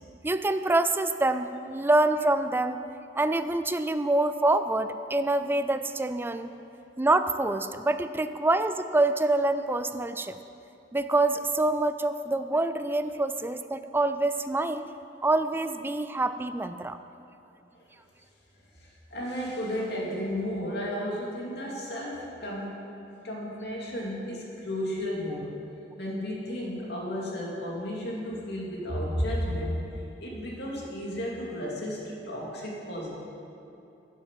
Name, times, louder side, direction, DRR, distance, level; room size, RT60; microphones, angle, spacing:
voice 1, 0.2-2.8 3.2-6.5 7.0-10.4 10.9-14.8 15.2-17.0, right 2 dB, 10° right, 11 dB, 0.3 m, -26 dB
voice 2, 18.8-22.8 23.2-25.6 26.0-33.1, equal, 65° left, -3 dB, 2.4 m, -33 dB
10.0 x 7.5 x 7.4 m, 2.8 s
head